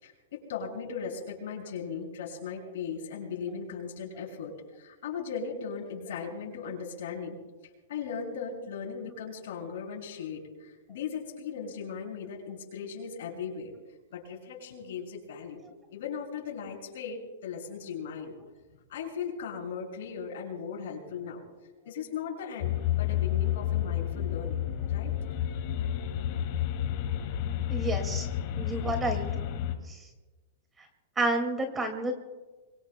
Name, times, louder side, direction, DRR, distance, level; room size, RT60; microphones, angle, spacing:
voice 1, 0.0-7.4 7.9-13.7 14.1-15.6 15.9-18.4 18.9-21.4 21.8-24.6 24.9-25.2, left 6 dB, 70° left, -1 dB, 6.6 m, -38 dB
sound 1, 22.6-29.8, left 11 dB, 50° left, 1.6 m, -30 dB
voice 2, 27.7-28.3 28.5-29.3 29.8-30.1 30.8-30.9 31.2-32.1, right 2 dB, 15° right, 4 dB, 2.2 m, -30 dB
26.5 x 23.5 x 2.2 m, 1.2 s
hypercardioid pair, 150°, 0 cm